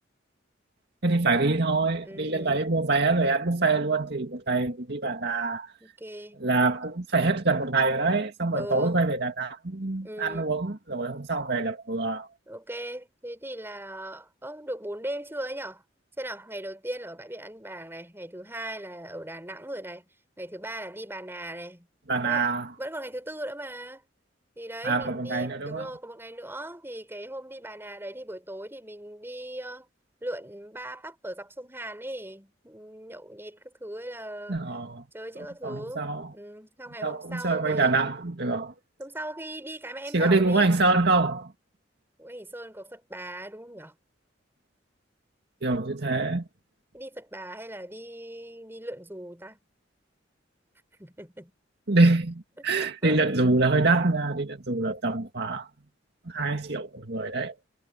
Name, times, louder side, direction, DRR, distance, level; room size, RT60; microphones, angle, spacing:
voice 1, 1.0-5.7 6.4-12.3 22.1-22.7 24.8-25.9 34.5-35.0 35.6-36.3 37.0-38.7 40.1-41.5 45.6-46.4 51.9-55.7 56.3-57.6, right 3 dB, 60° right, 2.2 m, -25 dB
voice 2, 2.0-2.7 5.8-6.4 8.5-9.0 10.0-10.6 12.5-15.8 16.2-20.1 20.4-21.9 22.2-22.5 22.8-24.0 24.6-29.9 30.2-34.6 35.1-37.9 39.0-40.7 42.2-43.9 46.9-49.6 51.0-51.5 52.6-53.2, right 1 dB, 10° right, 5.5 m, -39 dB
head